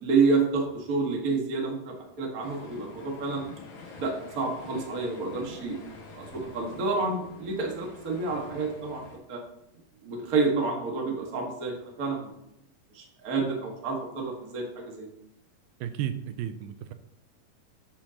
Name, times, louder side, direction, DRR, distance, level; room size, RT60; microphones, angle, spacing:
voice 1, 0.0-3.4 4.0-5.8 6.1-9.0 9.3-9.4 10.0-12.3 12.9-15.1, right 4 dB, 40° right, 0 dB, 1.3 m, -29 dB
sound 1, 2.4-9.2, left 3 dB, 55° left, 3.2 m, -46 dB
voice 2, 15.8-16.9, right 10 dB, 85° right, 10 dB, 2.3 m, -33 dB
10.5 x 7.7 x 2.9 m, 0.81 s
omnidirectional pair, 4.1 m